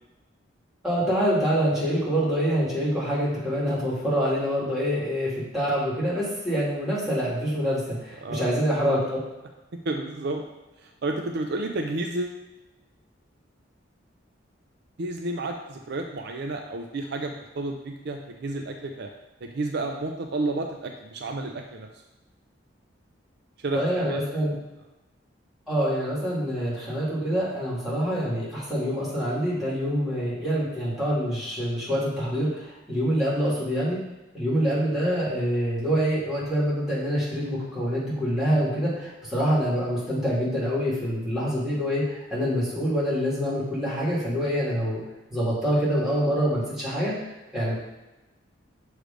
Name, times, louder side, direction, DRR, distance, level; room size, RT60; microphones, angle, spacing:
voice 1, 0.8-9.2 23.7-24.5 25.7-34.0 34.3-45.0 45.3-47.2 47.5-47.8, equal, 5° right, -8 dB, 2.2 m, -26 dB
voice 2, 9.9-10.4 10.8-12.5 15.0-19.1 19.4-21.9 23.6-24.2, right 2 dB, 60° right, 3 dB, 0.5 m, -31 dB
6.6 x 3.2 x 5.0 m, 1.0 s
head